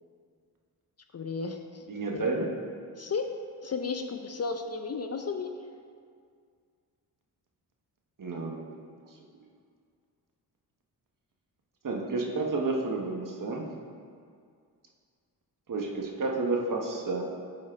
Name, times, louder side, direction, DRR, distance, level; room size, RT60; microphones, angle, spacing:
voice 1, 1.1-1.8 2.1-2.3 3.0-3.3 3.6-5.5, left 4 dB, 35° left, 6 dB, 0.6 m, -33 dB
voice 2, 1.9-2.5 8.2-8.7 11.8-13.6 15.7-17.2, right 3 dB, 45° right, 0 dB, 1.4 m, -30 dB
11.0 x 4.4 x 3.7 m, 2.2 s
supercardioid pair, 50°, 43 cm